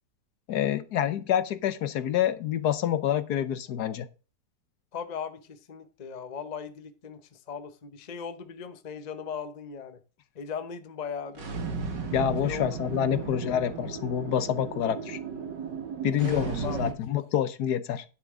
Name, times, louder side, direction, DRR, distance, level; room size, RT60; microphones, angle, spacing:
voice 1, 0.5-4.1 12.1-15.2 16.0-18.0, left 10 dB, 70° left, 14 dB, 1.3 m, -27 dB
voice 2, 4.9-10.0 10.3-11.5 12.4-12.8 13.1-13.3 16.2-16.8 17.2-17.3, left 6 dB, 35° left, 10 dB, 0.8 m, -38 dB
sound 1, 11.3-16.9, right 5 dB, 80° right, 2.4 m, -35 dB
10.5 x 7.5 x 3.7 m, 0.34 s
omnidirectional pair, 1.9 m